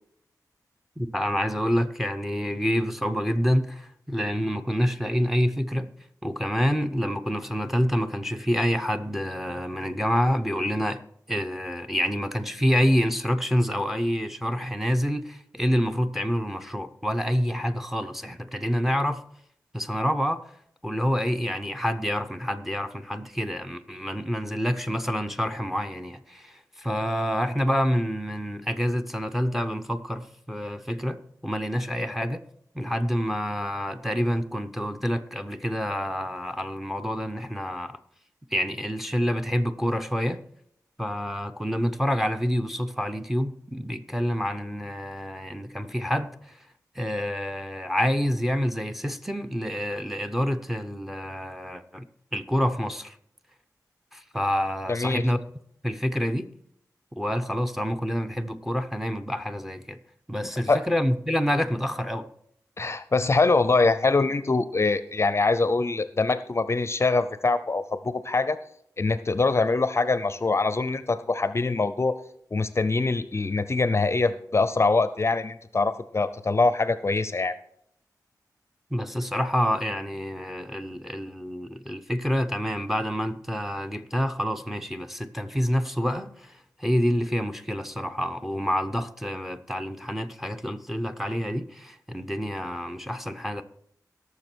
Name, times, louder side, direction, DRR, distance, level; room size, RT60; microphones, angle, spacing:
voice 1, 1.0-5.9 6.2-11.0 11.3-19.2 19.7-20.4 20.8-32.4 32.7-38.0 38.5-40.4 41.0-46.6 47.0-52.1 52.3-53.2 54.1-55.4 55.8-56.5 57.2-60.0 60.3-62.3 78.9-93.6, equal, 5° right, 0.7 m, -27 dB
voice 2, 54.9-55.2 60.7-60.8 62.8-68.6 69.0-72.2 72.5-77.6, left 3 dB, 40° left, 0.5 m, -24 dB
17.5 x 6.8 x 4.5 m
wide cardioid pair, 90°, 7 cm